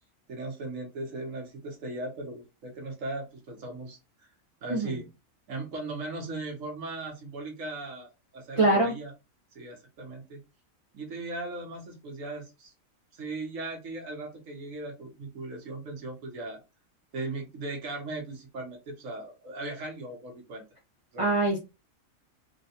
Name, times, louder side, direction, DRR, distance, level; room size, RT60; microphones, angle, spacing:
voice 1, 0.3-4.3 4.6-5.1 5.5-9.1 9.5-10.4 10.9-12.7 13.1-16.6 17.1-20.6 21.1-21.4, right 2 dB, 75° right, 2 dB, 1.4 m, -38 dB
voice 2, 8.6-8.9 21.2-21.6, right 2 dB, 40° right, -1 dB, 0.4 m, -23 dB
3.6 x 2.2 x 2.8 m, 0.26 s
omnidirectional pair, 1.4 m